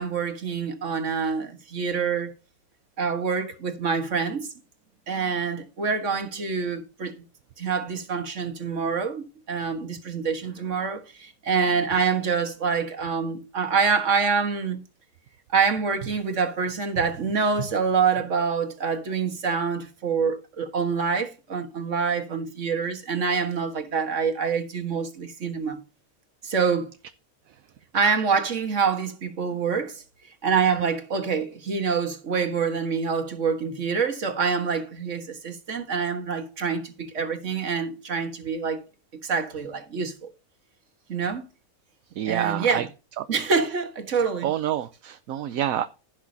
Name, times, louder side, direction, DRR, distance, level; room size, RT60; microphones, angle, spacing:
voice 1, 0.0-2.3 3.0-4.5 5.1-7.1 7.6-14.8 15.5-25.8 26.4-26.9 27.9-30.0 30.4-38.8 39.2-40.3 41.1-41.5 42.3-42.9 43.3-44.5, right 5 dB, 55° right, 1.8 m, -26 dB
voice 2, 42.2-42.9 43.2-43.3 44.4-45.9, right 11 dB, 75° right, 1.1 m, -27 dB
16.0 x 6.1 x 2.8 m
omnidirectional pair, 1.5 m